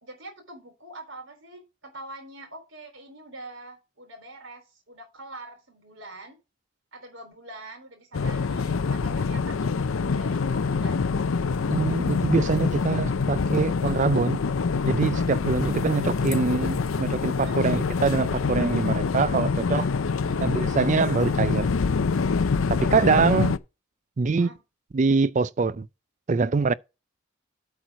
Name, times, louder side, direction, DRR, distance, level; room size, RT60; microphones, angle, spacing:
voice 1, 0.0-6.4 6.9-11.1 16.1-16.5 17.4-17.6 20.2-20.4 24.4-24.6, right 2 dB, 65° right, 3.8 m, -44 dB
sound 1, 8.1-23.6, left 4 dB, 75° left, 0.5 m, -25 dB
voice 2, 11.7-14.4 14.8-19.9 20.4-21.7 22.7-23.5 24.2-24.5 24.9-25.9 26.3-26.7, right 4 dB, 35° right, 0.4 m, -24 dB
8.6 x 4.5 x 6.0 m
head